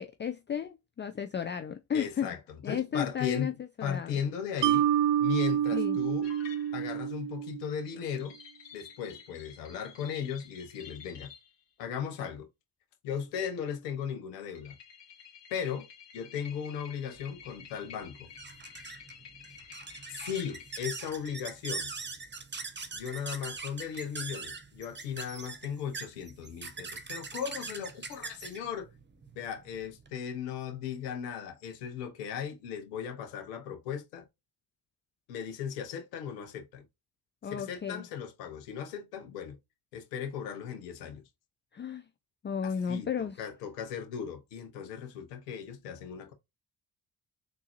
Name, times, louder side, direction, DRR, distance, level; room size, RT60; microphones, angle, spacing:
voice 1, 0.0-2.3 2.6-3.5 3.8-4.2 5.7-6.0 37.4-38.0 41.7-42.1 42.4-43.4, left 7 dB, 25° left, 0.4 m, -33 dB
voice 2, 1.9-3.5 3.8-4.9 5.2-6.3 6.7-8.4 8.7-11.3 11.8-12.5 13.0-14.8 15.5-15.9 16.1-18.3 20.1-21.9 22.9-28.9 29.4-34.3 35.3-36.9 37.4-39.6 39.9-41.2 42.6-46.3, left 8 dB, 85° left, 0.8 m, -37 dB
Mallet percussion, 4.6-7.9, right 10 dB, 60° right, 0.6 m, -28 dB
sound 1, 6.2-7.1 8.1-11.5 14.5-20.9, left 7 dB, 60° left, 1.5 m, -51 dB
sound 2, 17.2-30.1, right 4 dB, 25° right, 0.9 m, -42 dB
3.7 x 2.6 x 2.8 m
hypercardioid pair, 40°, 47 cm